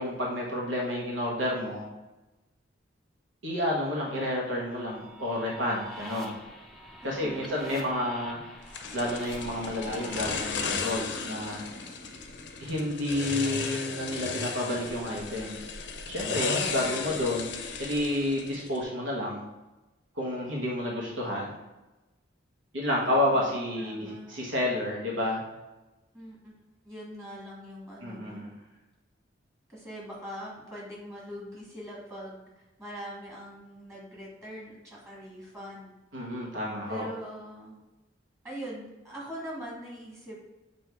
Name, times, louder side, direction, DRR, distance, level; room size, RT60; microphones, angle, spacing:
voice 1, 0.0-1.9 3.4-6.4 7.0-8.4 8.9-11.7 12.6-15.6 16.0-19.5 20.1-21.6 22.7-25.4 28.0-28.6 36.1-37.1, left 1 dB, 80° right, -3 dB, 1.3 m, -30 dB
sound 1, 4.7-10.9, left 1 dB, ahead, 0.6 m, -45 dB
voice 2, 7.0-8.1 16.7-17.2 23.0-24.4 26.1-26.5 26.8-28.5 29.7-35.9 36.9-37.7 38.4-40.4, equal, 15° right, -4 dB, 1.6 m, -43 dB
sound 2, 8.7-18.8, left 5 dB, 65° left, 0.7 m, -35 dB
7.4 x 2.7 x 4.6 m, 1.1 s
head